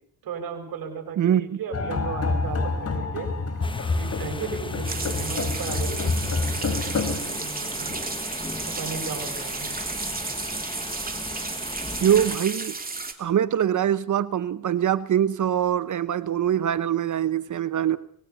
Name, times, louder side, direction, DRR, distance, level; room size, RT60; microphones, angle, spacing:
voice 1, 0.2-3.3 3.9-8.0 8.7-9.7, right 5 dB, 80° right, 4 dB, 6.9 m, -36 dB
voice 2, 1.2-1.6 12.0-12.8 13.2-18.0, right 10 dB, 55° right, 14 dB, 0.9 m, -23 dB
sound 1, 1.7-7.2, left 3 dB, 45° left, 3.6 m, -27 dB
sound 2, 3.6-12.4, left 2 dB, 15° left, 1.4 m, -38 dB
sound 3, 4.8-13.1, right 3 dB, 25° right, 3.0 m, -32 dB
25.5 x 20.0 x 7.0 m, 0.65 s
cardioid pair, 95°, 35 cm